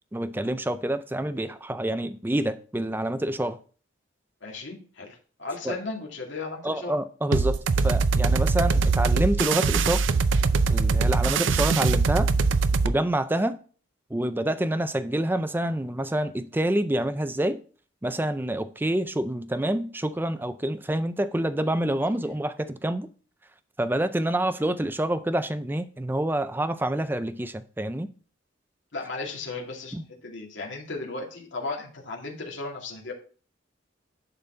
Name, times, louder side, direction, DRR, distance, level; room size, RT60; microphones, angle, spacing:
voice 1, 0.1-3.6 5.6-5.8 6.6-10.0 10.7-12.3 12.8-13.6 14.1-17.6 18.0-23.1 23.8-28.1 29.9-30.0, right 1 dB, 10° right, 0.4 m, -27 dB
voice 2, 4.4-6.9 28.9-33.1, left 3 dB, 70° left, 2.2 m, -35 dB
sound 1, 7.3-12.9, right 4 dB, 75° right, 0.5 m, -22 dB
10.5 x 4.1 x 4.4 m
head